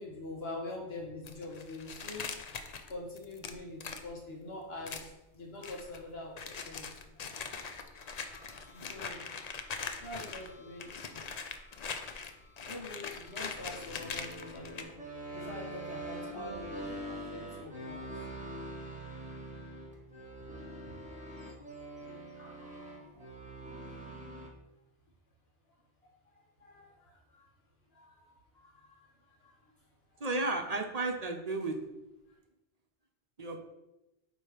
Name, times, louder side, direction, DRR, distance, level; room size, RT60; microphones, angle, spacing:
voice 1, 0.0-2.2 2.9-6.9 8.3-9.3 10.0-11.4 12.6-14.9 15.3-18.3 21.4-21.5 22.4-23.3 26.3-27.5 27.9-28.2 28.5-29.7 30.1-30.4, left 2 dB, 70° left, -2 dB, 1.5 m, -45 dB
sound 1, 1.3-4.1 4.9-5.1 5.6-6.0 6.4-10.5 10.8-14.8, left 5 dB, 50° left, 0.6 m, -42 dB
sound 2, 8.0-24.5, right 1 dB, 5° right, 1.2 m, -45 dB
voice 2, 30.2-31.8 33.4-33.7, right 2 dB, 45° right, 4 dB, 0.7 m, -33 dB
8.7 x 3.0 x 4.9 m, 0.96 s
omnidirectional pair, 1.1 m